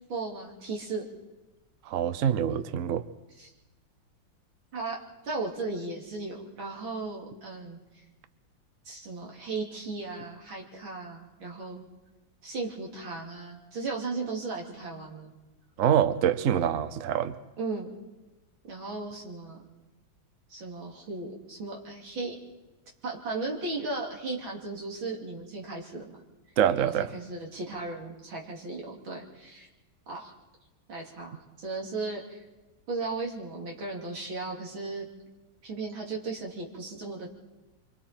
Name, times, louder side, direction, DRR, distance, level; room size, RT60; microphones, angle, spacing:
voice 1, 0.1-1.1 3.4-3.5 4.7-7.8 8.9-11.9 12.4-15.3 17.6-17.9 18.7-19.6 20.5-22.4 23.0-26.2 26.8-29.7 30.1-30.3 30.9-32.4 32.9-35.1 35.6-37.3, right 3 dB, 75° right, -1 dB, 3.6 m, -36 dB
voice 2, 1.9-3.0 15.8-17.4 26.6-27.1, right 9 dB, 55° right, 12 dB, 0.9 m, -25 dB
25.5 x 25.0 x 4.4 m, 1.1 s
omnidirectional pair, 2.2 m